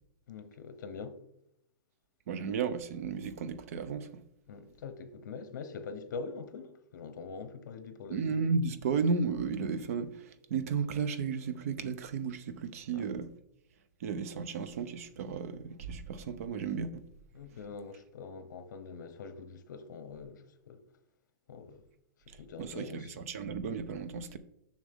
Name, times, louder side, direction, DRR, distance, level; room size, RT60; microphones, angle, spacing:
voice 1, 0.3-1.2 4.5-8.2 12.9-13.1 17.3-20.8 21.5-21.8 22.4-23.2, left 5 dB, 65° left, 0.9 m, -44 dB
voice 2, 2.3-4.1 8.1-13.3 14.0-17.0 22.6-24.4, right 5 dB, 45° right, 0.6 m, -34 dB
7.0 x 6.3 x 3.6 m
hypercardioid pair, 170°, 11 cm